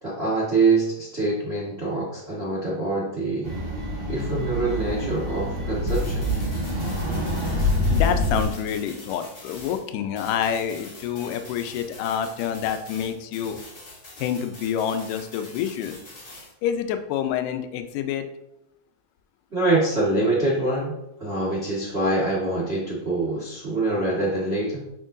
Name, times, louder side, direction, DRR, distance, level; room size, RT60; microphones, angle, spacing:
voice 1, 0.0-3.5 4.1-6.3 7.5-7.7 19.5-24.9, right 2 dB, 85° right, -6 dB, 0.5 m, -25 dB
sound 1, 3.4-8.4, left 1 dB, 40° right, 1.1 m, -26 dB
sound 2, 5.9-9.9 10.2-16.5, left 2 dB, 40° left, 1.2 m, -44 dB
voice 2, 7.9-13.6 14.2-16.0 16.6-18.2, left 8 dB, 80° left, 8 dB, 2.2 m, -27 dB
7.4 x 5.2 x 2.6 m, 0.84 s
omnidirectional pair, 3.8 m